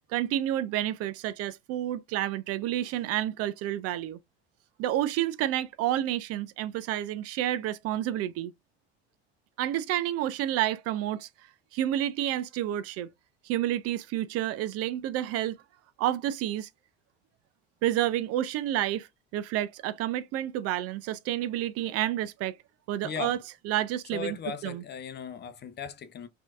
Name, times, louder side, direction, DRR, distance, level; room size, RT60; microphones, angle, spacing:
voice 1, 0.1-4.2 4.8-8.5 9.6-11.3 11.7-13.1 13.4-15.6 16.0-16.7 17.8-22.6 22.9-23.4 23.6-24.4 24.6-24.8, right 12 dB, 50° right, 0.4 m, -29 dB
voice 2, 23.0-23.4 24.1-26.3, left 6 dB, 35° left, 0.7 m, -37 dB
4.3 x 2.7 x 2.3 m
hypercardioid pair, 75°, 32 cm